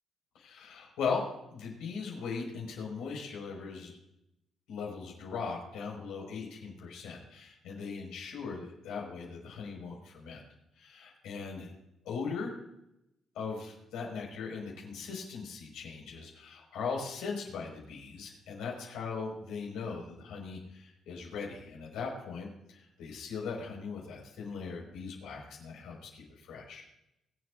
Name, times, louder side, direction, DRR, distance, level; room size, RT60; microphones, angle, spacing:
voice 1, 0.3-1.2 1.5-4.0 4.7-10.4 10.8-11.7 12.0-12.5 13.3-26.8, left 5 dB, 90° left, -1 dB, 5.4 m, -39 dB
24.5 x 8.4 x 2.6 m, 0.84 s
cardioid pair, 90°, 0 cm